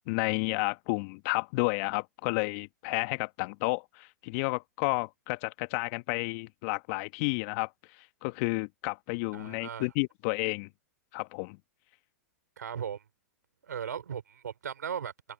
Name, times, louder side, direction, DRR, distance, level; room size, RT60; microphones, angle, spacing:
voice 1, 0.1-7.7 8.2-10.7 11.1-11.6, left 28 dB, 50° left, 1.6 m, -31 dB
voice 2, 9.3-9.9 12.6-13.0 13.7-15.1, right 8 dB, 80° right, 4.1 m, -37 dB
hypercardioid pair, 110°, 9 cm